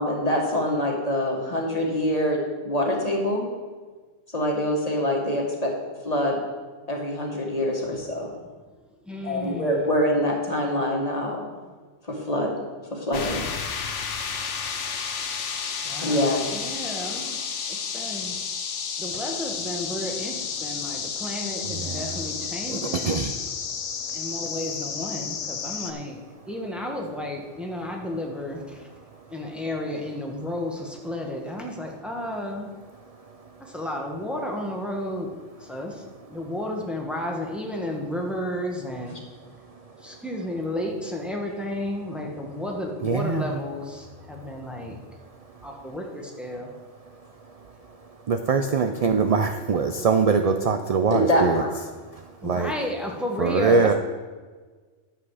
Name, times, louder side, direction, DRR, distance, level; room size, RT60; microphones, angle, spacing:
voice 1, 0.0-2.4 2.6-3.5 4.3-5.7 6.0-6.4 6.9-8.3 9.2-11.4 12.1-12.6 12.9-13.5 16.0-16.4 51.1-51.7, left 1 dB, 30° left, -1 dB, 1.8 m, -25 dB
voice 2, 9.0-9.9 15.8-16.2 16.5-17.4 17.7-18.4 19.0-23.2 24.1-28.9 29.3-32.7 33.6-35.3 35.6-36.0 36.3-39.2 40.0-45.0 45.6-46.7 52.4-53.9, left 1 dB, ahead, 0 dB, 1.2 m, -32 dB
sound 1, 13.1-25.9, left 6 dB, 75° left, 1.2 m, -31 dB
voice 3, 21.6-22.2 22.7-23.4 43.0-43.6 48.3-51.6 52.1-52.7 53.4-53.9, right 5 dB, 55° right, 6 dB, 0.4 m, -23 dB
10.5 x 7.5 x 4.9 m, 1.4 s
omnidirectional pair, 1.2 m